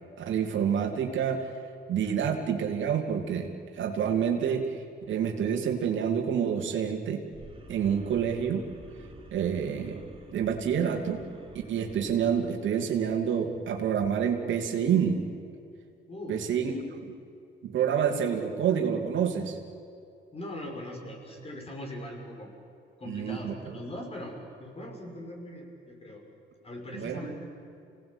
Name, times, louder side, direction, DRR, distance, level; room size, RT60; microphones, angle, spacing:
voice 1, 0.2-7.2 7.7-8.6 9.0-10.0 10.3-11.2 11.7-15.3 16.3-16.7 17.6-19.6 23.1-23.7 26.9-27.2, right 8 dB, 75° right, 3 dB, 2.7 m, -28 dB
sound 1, 7.3-13.6, right 2 dB, 25° right, 4.3 m, -51 dB
voice 2, 16.1-16.4 16.7-16.8 20.3-22.5 23.0-26.2 26.6-27.4, left 1 dB, 30° left, 1 dB, 6.2 m, -40 dB
26.5 x 18.5 x 8.8 m, 2.5 s
cardioid pair, 90°, 20 cm